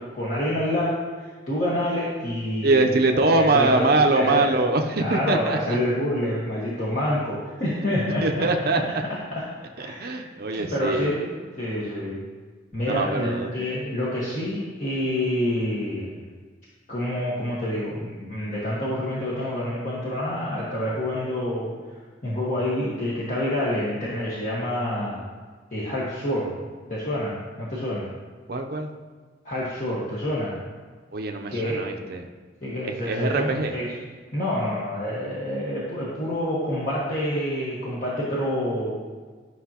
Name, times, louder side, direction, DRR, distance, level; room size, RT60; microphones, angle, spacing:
voice 1, 0.0-3.0 3.3-4.5 5.0-8.5 8.9-9.4 9.8-10.2 10.6-12.2 12.7-16.2 16.9-25.3 25.7-26.5 26.9-28.1 29.4-30.6 31.5-31.9 32.6-34.0 34.3-39.1, left 1 dB, 45° left, -8 dB, 1.4 m, -27 dB
voice 2, 2.6-5.8 8.2-8.8 10.0-11.1 12.9-13.5 28.5-28.9 31.1-32.3 32.8-33.7, right 2 dB, 55° right, 3 dB, 0.6 m, -23 dB
11.5 x 6.0 x 2.9 m, 1.5 s
head